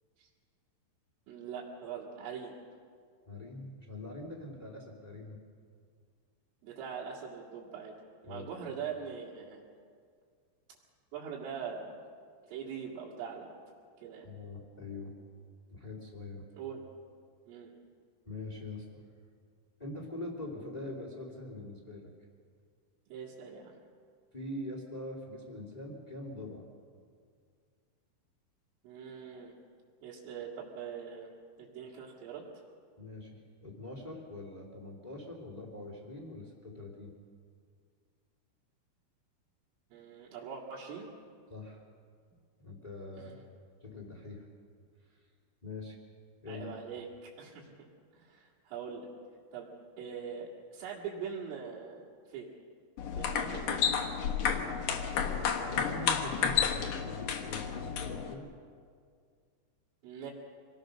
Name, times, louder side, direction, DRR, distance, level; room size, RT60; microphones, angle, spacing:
voice 1, 1.3-2.5 6.6-7.9 8.2-9.6 11.1-12.0 12.5-13.5 14.0-14.3 16.5-16.8 17.5-17.7 23.1-23.8 28.8-29.5 30.0-31.3 31.6-32.4 39.9-41.1 43.2-43.3 46.5-47.7 48.1-49.1 49.5-49.7 50.0-52.0 52.3-52.5 53.2-54.0 60.0-60.3, right 7 dB, 75° right, -7 dB, 4.8 m, -42 dB
voice 2, 3.2-5.4 8.2-8.5 14.2-15.1 15.7-16.4 18.2-19.0 19.8-22.1 24.3-26.7 33.0-37.1 41.5-41.8 42.3-43.4 43.8-44.5 45.1-45.2 45.6-46.0 46.4-46.7 55.3-58.5, left 2 dB, 15° left, 0 dB, 1.2 m, -43 dB
sound 1, 53.0-58.3, left 7 dB, 65° left, 2.2 m, -31 dB
26.0 x 18.5 x 6.4 m, 2.1 s
omnidirectional pair, 5.9 m